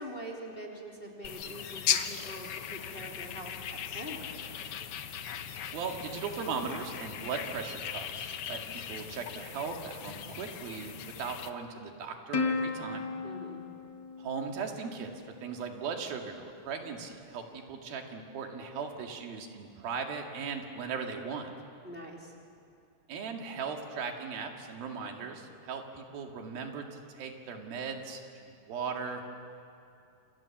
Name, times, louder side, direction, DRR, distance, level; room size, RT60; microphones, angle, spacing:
voice 1, 0.0-4.3 13.2-13.6 21.8-22.3, right 1 dB, 15° left, -1 dB, 3.1 m, -44 dB
sound 1, 1.2-11.5, left 9 dB, 90° left, 1.2 m, -38 dB
voice 2, 5.7-13.1 14.2-21.5 23.1-29.3, right 5 dB, 85° right, 3 dB, 4.0 m, -38 dB
Plucked string instrument, 12.3-15.1, left 4 dB, 60° left, 1.1 m, -35 dB
28.5 x 28.0 x 7.3 m, 2.6 s
omnidirectional pair, 4.1 m